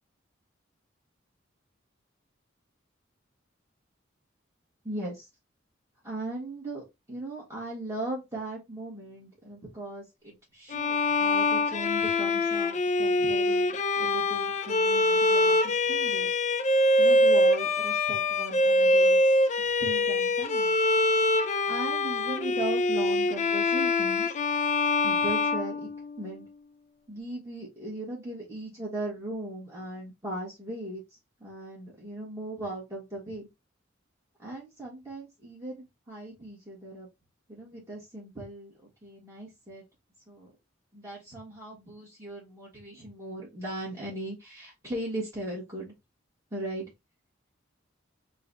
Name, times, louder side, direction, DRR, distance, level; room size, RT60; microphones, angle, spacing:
voice 1, 4.8-5.3 6.0-6.8 7.1-16.4 17.0-19.2 19.6-20.7 21.7-24.3 25.0-25.9 26.2-26.5 27.1-31.0 31.4-33.5 34.4-37.1 37.5-38.7 39.0-39.8 40.3-40.5 40.9-45.9 46.5-46.9, right 1 dB, 15° right, -6 dB, 1.6 m, -38 dB
Bowed string instrument, 10.7-26.4, left 2 dB, 35° left, 0.4 m, -24 dB
3.9 x 2.4 x 3.9 m, 0.22 s
head